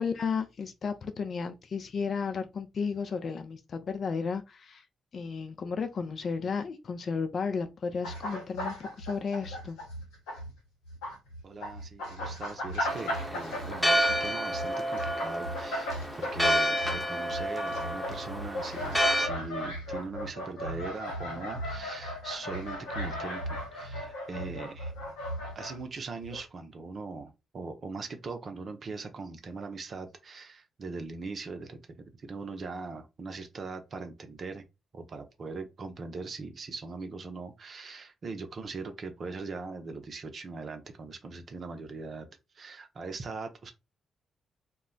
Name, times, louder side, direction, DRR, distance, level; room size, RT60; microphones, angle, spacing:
voice 1, 0.0-4.9 5.1-9.8, left 5 dB, 55° left, 0.4 m, -33 dB
sound 1, 8.0-10.5 10.8-25.9 26.2-26.4, equal, 80° left, 0.9 m, -37 dB
voice 2, 11.4-15.9 16.2-24.9 25.5-31.8 32.2-34.6 34.9-42.3 42.5-43.7, right 4 dB, 55° right, 0.5 m, -40 dB
Church bell, 12.9-19.3, equal, 5° left, 0.8 m, -29 dB
2.2 x 2.0 x 3.7 m
hypercardioid pair, 45°, 0 cm